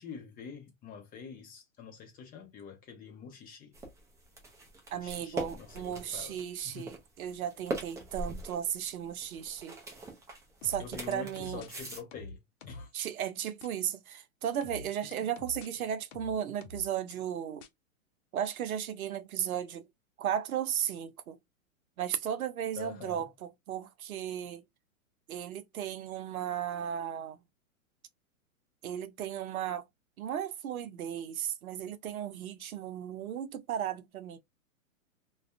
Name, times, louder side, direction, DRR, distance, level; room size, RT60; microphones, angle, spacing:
voice 1, 0.0-3.8 4.9-6.9 10.8-12.4 12.7-12.9 22.7-23.3, left 7 dB, 20° left, 0.7 m, -46 dB
sound 1, 3.7-12.0, right 2 dB, 5° right, 0.4 m, -42 dB
voice 2, 4.9-9.8 10.6-11.6 12.9-17.6 18.3-19.8 20.2-21.4 22.0-24.6 25.3-27.4 28.8-29.8 30.2-34.4, right 9 dB, 80° right, 0.7 m, -35 dB
sound 2, 10.6-11.7 12.1-12.9 13.6-13.7 14.6-15.7 16.1-17.1 17.6-17.7, left 2 dB, 60° left, 0.7 m, -46 dB
2.5 x 2.3 x 2.4 m
hypercardioid pair, 120°, 42 cm